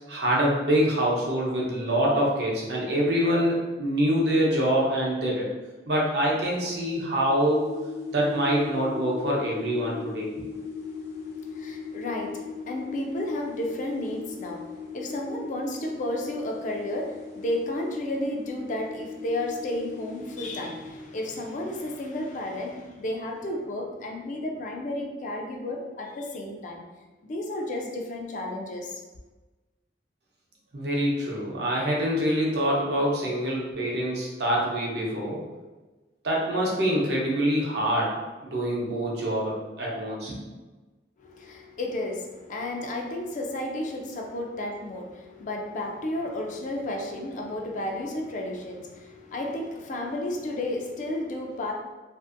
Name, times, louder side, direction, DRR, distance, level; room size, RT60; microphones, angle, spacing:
voice 1, 0.1-5.5 5.9-7.7 8.1-10.3 30.7-35.4 36.2-38.1 38.4-40.4, equal, 65° right, -3 dB, 0.7 m, -25 dB
sound 1, 7.4-20.9, left 5 dB, 85° left, 0.8 m, -39 dB
voice 2, 10.5-26.8 27.2-29.0 41.2-51.7, left 1 dB, 45° left, 1 dB, 0.4 m, -32 dB
2.6 x 2.5 x 2.5 m, 1.2 s
head